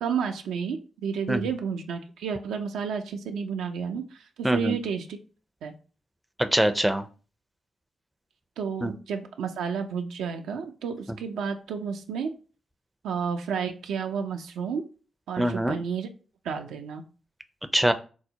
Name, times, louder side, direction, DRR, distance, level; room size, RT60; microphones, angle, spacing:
voice 1, 0.0-5.2 5.6-5.7 8.6-12.3 13.0-14.8 15.3-16.1 16.4-17.0, right 6 dB, 80° right, 5 dB, 0.4 m, -31 dB
voice 2, 6.4-7.0 8.8-8.9 15.4-15.8 17.7-17.9, right 1 dB, 5° right, 8 dB, 0.4 m, -23 dB
4.5 x 2.0 x 2.8 m, 0.37 s
hypercardioid pair, 40°, 0 cm